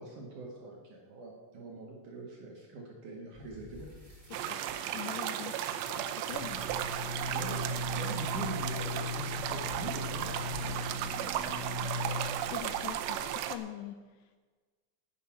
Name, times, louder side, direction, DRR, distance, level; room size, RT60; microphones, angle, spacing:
voice 1, 0.0-3.9 7.3-10.9, right 2 dB, 60° right, -2 dB, 2.4 m, -43 dB
sound 1, 3.3-10.7, right 1 dB, 15° right, 2.5 m, -54 dB
sound 2, 4.3-13.6, right 11 dB, 80° right, 2.7 m, -35 dB
voice 2, 4.9-6.7 12.5-14.4, left 11 dB, 80° left, 8 dB, 2.6 m, -44 dB
sound 3, 6.2-13.4, left 2 dB, 35° right, 5.4 m, -39 dB
10.5 x 10.5 x 5.9 m, 1.4 s
omnidirectional pair, 5.3 m